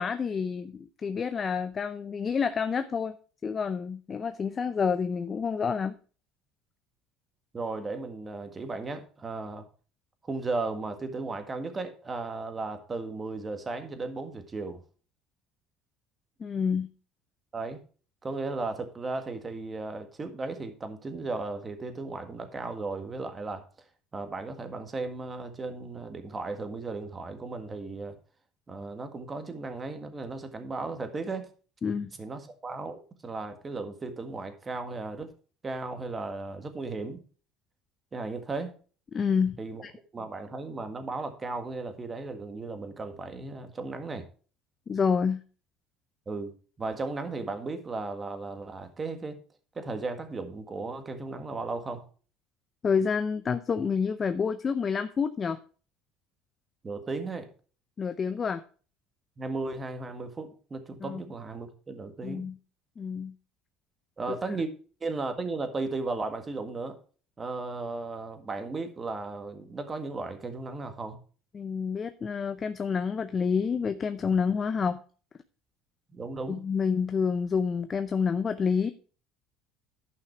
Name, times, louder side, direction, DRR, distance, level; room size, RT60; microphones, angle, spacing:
voice 1, 0.0-3.2 3.4-5.9 16.4-16.9 31.8-32.1 39.1-39.6 39.8-39.9 44.9-45.4 52.8-55.6 58.0-58.6 61.0-61.2 62.2-62.5 63.0-63.3 64.3-64.4 71.5-75.0 76.5-78.9, left 6 dB, 30° left, 10 dB, 0.6 m, -28 dB
voice 2, 7.5-9.6 10.2-14.8 17.5-17.8 18.2-23.6 24.1-28.2 28.7-31.5 32.2-35.3 35.6-37.2 38.1-38.7 39.6-39.8 40.1-44.3 46.2-49.4 49.7-52.0 56.8-57.5 59.4-62.5 64.2-64.7 65.0-67.0 67.4-71.2 76.1-76.6, right 3 dB, 25° right, 7 dB, 1.6 m, -35 dB
11.0 x 5.8 x 4.6 m, 0.39 s
supercardioid pair, 105°, 0 cm